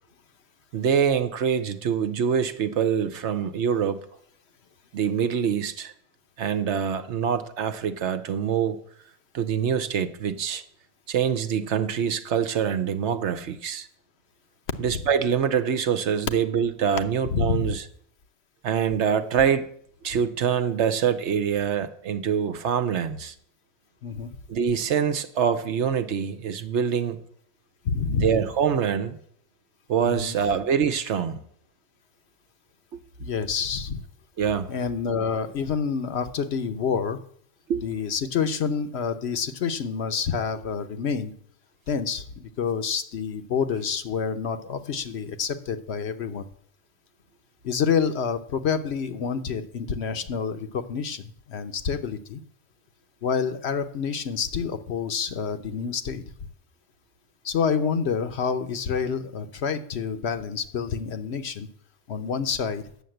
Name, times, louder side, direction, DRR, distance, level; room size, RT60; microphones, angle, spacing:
voice 1, 0.7-4.0 4.9-5.9 6.4-8.8 9.3-10.6 11.1-13.9 14.8-17.8 18.6-19.7 20.0-23.3 24.5-27.2 28.2-29.2 29.9-31.4 34.4-34.7 37.7-37.8, right 7 dB, 65° right, 10 dB, 1.0 m, -25 dB
voice 2, 17.3-17.7 24.0-24.3 27.8-28.4 30.0-30.4 33.2-34.0 34.7-37.2 37.8-41.3 41.9-46.4 47.6-52.4 53.2-56.2 57.4-61.7 62.1-62.8, left 6 dB, 65° left, 9 dB, 1.0 m, -28 dB
9.3 x 6.8 x 7.7 m, 0.65 s
omnidirectional pair, 1.3 m